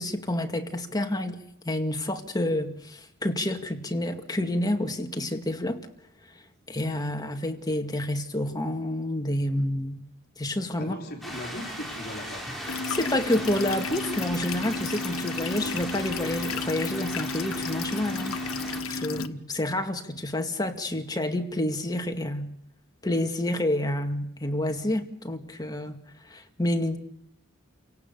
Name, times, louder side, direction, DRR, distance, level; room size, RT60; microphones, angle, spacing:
voice 1, 0.0-1.4 1.6-5.9 6.7-10.0 10.4-10.9 12.9-18.4 18.9-22.5 23.0-26.0 26.3-27.0, left 1 dB, 20° left, 5 dB, 2.2 m, -29 dB
voice 2, 10.8-12.5, left 1 dB, 50° left, 2 dB, 4.4 m, -38 dB
sound 1, 11.2-18.8, equal, ahead, 6.2 m, -38 dB
sound 2, 12.7-19.3, left 3 dB, 90° left, 1.3 m, -33 dB
29.5 x 18.0 x 7.0 m, 0.79 s
head